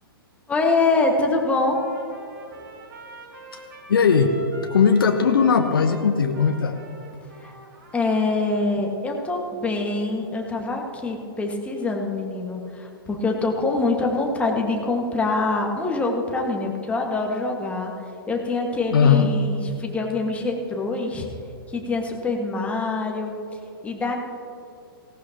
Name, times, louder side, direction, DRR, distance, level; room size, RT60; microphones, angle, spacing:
voice 1, 0.5-1.8 7.4-7.5 7.9-17.9 18.3-21.3 21.7-24.1, left 3 dB, 10° left, 1 dB, 1.8 m, -25 dB
Trumpet, 1.7-8.8, right 1 dB, 65° right, 3.1 m, -44 dB
voice 2, 3.9-4.3 4.7-6.8 18.9-19.3, left 6 dB, 65° left, 6 dB, 1.0 m, -18 dB
18.0 x 17.5 x 3.0 m, 2.6 s
figure-of-eight pair, 115°, 12 cm